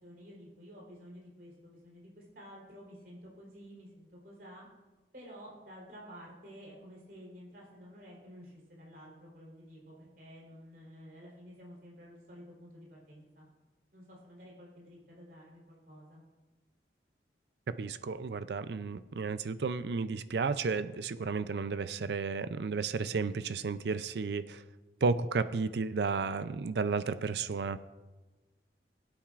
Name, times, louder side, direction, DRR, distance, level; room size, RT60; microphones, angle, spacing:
voice 1, 0.0-4.7 5.1-13.5 13.9-16.2, equal, 55° right, -4 dB, 3.7 m, -51 dB
voice 2, 17.7-24.6 25.0-27.8, right 4 dB, 70° right, 13 dB, 0.5 m, -33 dB
20.5 x 8.8 x 2.5 m, 1.2 s
head